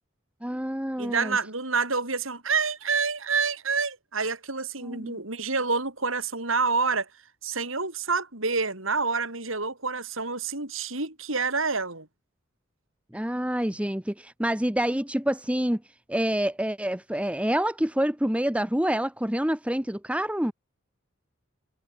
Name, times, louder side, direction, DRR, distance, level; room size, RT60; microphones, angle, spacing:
voice 1, 0.4-1.4 4.8-5.2 13.1-15.8 16.1-20.5, right 1 dB, 5° right, 1.3 m, -27 dB
voice 2, 1.0-7.1 7.4-12.1, right 4 dB, 75° right, 7.8 m, -28 dB
head